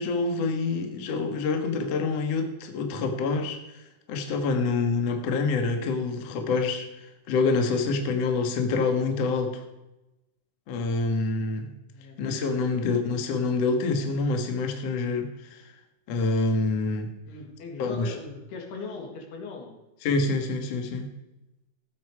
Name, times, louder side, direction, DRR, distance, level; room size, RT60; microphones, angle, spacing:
voice 1, 0.0-3.6 4.1-9.6 10.7-11.7 12.2-15.6 16.1-17.1 17.8-18.1 20.0-21.1, left 3 dB, 55° left, 5 dB, 1.9 m, -26 dB
voice 2, 11.8-13.2 17.3-19.8, left 4 dB, 80° left, 2 dB, 4.0 m, -40 dB
15.5 x 8.4 x 4.8 m, 0.97 s
omnidirectional pair, 4.5 m